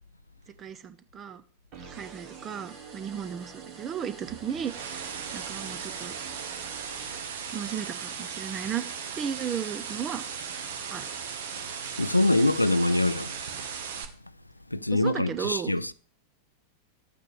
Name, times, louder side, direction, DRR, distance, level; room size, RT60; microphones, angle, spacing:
voice 1, 0.6-1.4 1.9-5.1 5.3-6.1 7.5-8.9 9.2-10.2 10.9-11.1 14.9-15.7, right 8 dB, 25° right, 0.8 m, -35 dB
sound 1, 1.7-7.9, right 5 dB, 45° right, 1.9 m, -46 dB
sound 2, 4.3-14.0, right 7 dB, 60° right, 1.1 m, -37 dB
voice 2, 12.0-13.4 14.7-15.9, left 2 dB, 85° left, 0.4 m, -24 dB
12.0 x 8.5 x 3.3 m
figure-of-eight pair, 90°, 0 cm